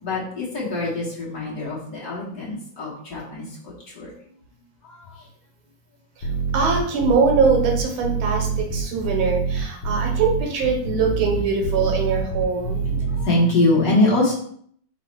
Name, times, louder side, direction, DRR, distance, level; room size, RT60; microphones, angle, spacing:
voice 1, 0.0-4.1 4.9-5.0 12.6-14.3, left 2 dB, 50° left, -5 dB, 1.5 m, -23 dB
sound 1, 6.2-13.2, right 5 dB, 70° left, 1.6 m, -25 dB
voice 2, 6.5-12.8, right 4 dB, 75° right, 1 dB, 1.6 m, -22 dB
4.0 x 2.0 x 4.4 m, 0.62 s
omnidirectional pair, 2.3 m